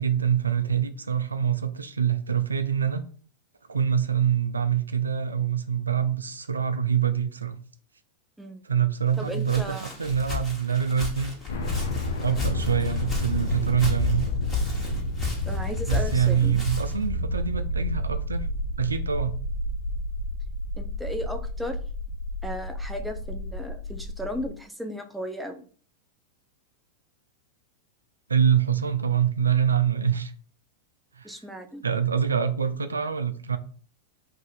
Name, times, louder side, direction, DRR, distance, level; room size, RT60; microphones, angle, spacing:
voice 1, 0.0-3.0 3.7-7.6 8.6-11.3 12.2-14.3 15.9-18.5 18.8-19.3 28.3-30.3 31.1-31.4 31.8-33.6, right 8 dB, 90° right, 0.3 m, -25 dB
Walk footsteps, 9.1-17.1, left 5 dB, 20° left, 1.4 m, -34 dB
voice 2, 9.2-10.1 15.5-16.6 17.2-17.3 20.8-21.8 22.4-25.7 31.2-31.8, equal, 5° right, 0.5 m, -35 dB
sound 1, 11.5-24.5, left 1 dB, 75° left, 0.5 m, -30 dB
2.7 x 2.5 x 3.9 m
hypercardioid pair, 95°, 0 cm